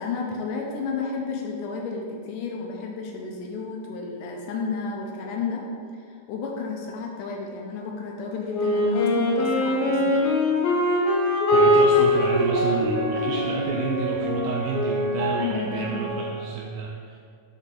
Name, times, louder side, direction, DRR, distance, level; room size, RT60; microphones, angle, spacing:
voice 1, 0.0-5.7 6.1-10.3 15.4-16.2, left 4 dB, 85° left, 0 dB, 1.8 m, -32 dB
Wind instrument woodwind instrument, 8.5-15.2, left 1 dB, 70° left, 2.8 m, -22 dB
sound 1, 11.5-16.6, right 2 dB, 70° right, 2.8 m, -31 dB
voice 2, 11.5-17.2, right 6 dB, 85° right, 0 dB, 2.0 m, -31 dB
5.9 x 3.7 x 5.7 m, 2.3 s
omnidirectional pair, 4.5 m